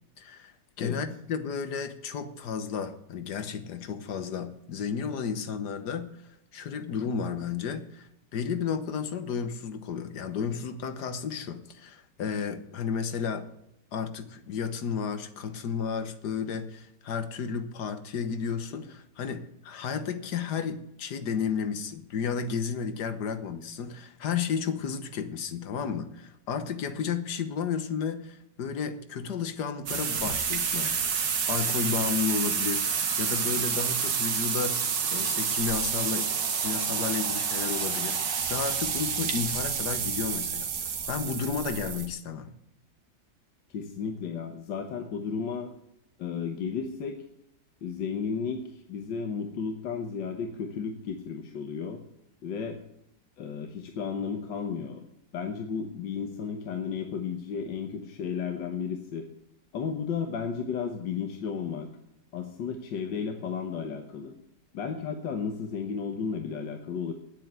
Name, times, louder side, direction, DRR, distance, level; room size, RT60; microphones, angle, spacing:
voice 1, 0.2-13.4 13.9-36.3 36.6-42.5, left 6 dB, 65° left, 10 dB, 1.7 m, -33 dB
sound 1, 29.9-42.1, right 6 dB, 75° right, 2.0 m, -29 dB
voice 2, 43.7-45.7 46.2-47.2 47.8-52.0 52.4-52.8 53.4-55.1 55.3-59.3 59.7-61.9 62.3-64.4 64.7-67.1, left 6 dB, 85° left, 4 dB, 1.8 m, -33 dB
9.9 x 9.1 x 8.0 m, 0.80 s
omnidirectional pair, 1.9 m